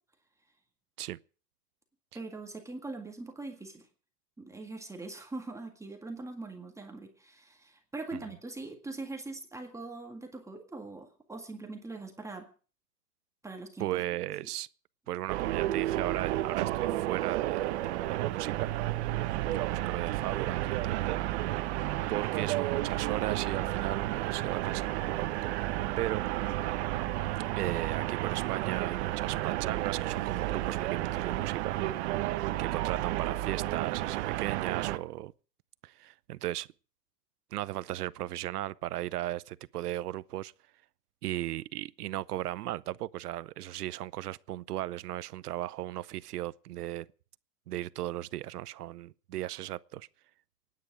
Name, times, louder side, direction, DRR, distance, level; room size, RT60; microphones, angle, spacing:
voice 1, 2.1-3.9 4.4-12.5 13.4-14.0 14.4-14.5, right 3 dB, 5° right, 1.8 m, -42 dB
voice 2, 13.8-14.7 15.1-18.9 19.5-21.4 22.1-25.5 26.0-26.3 27.6-31.8 32.6-35.3 35.8-36.7 37.5-40.5 41.2-47.1 47.7-50.1, right 14 dB, 75° right, 0.7 m, -36 dB
sound 1, 15.3-35.0, right 15 dB, 45° right, 1.1 m, -32 dB
24.5 x 9.7 x 4.8 m
hypercardioid pair, 140°, 47 cm